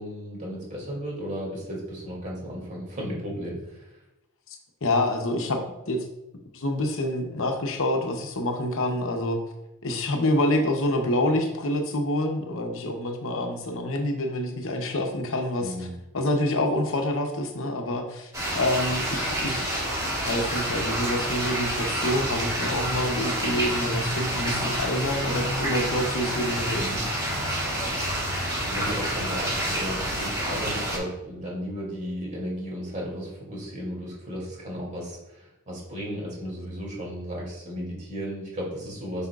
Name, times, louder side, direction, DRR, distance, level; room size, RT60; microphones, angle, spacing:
voice 1, 0.0-3.9 15.6-15.9 26.8-27.0 27.9-39.3, equal, 35° right, -3 dB, 2.4 m, -35 dB
voice 2, 4.8-5.6 5.9-6.0 6.5-9.4 9.8-15.9 16.1-19.9 20.3-27.0, left 1 dB, 60° left, 4 dB, 0.8 m, -27 dB
sound 1, 18.3-31.0, right 1 dB, 15° right, 2.2 m, -28 dB
7.8 x 5.6 x 2.4 m, 0.91 s
head